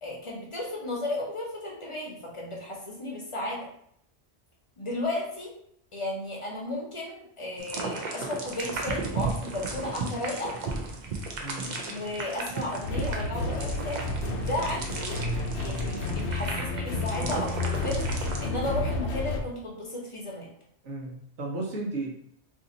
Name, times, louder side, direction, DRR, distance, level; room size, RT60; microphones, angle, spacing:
voice 1, 0.0-3.7 4.8-5.5 5.9-10.5 11.8-14.0 14.3-15.2 15.5-20.5, left 1 dB, 30° left, -3 dB, 0.8 m, -34 dB
sound 1, 7.6-18.5, right 3 dB, 50° right, 0.6 m, -35 dB
voice 2, 11.4-11.8 20.8-22.1, right 2 dB, 85° right, -1 dB, 1.2 m, -34 dB
sound 2, 12.8-19.4, left 2 dB, 75° left, 0.9 m, -31 dB
2.7 x 2.7 x 3.8 m, 0.69 s
omnidirectional pair, 1.2 m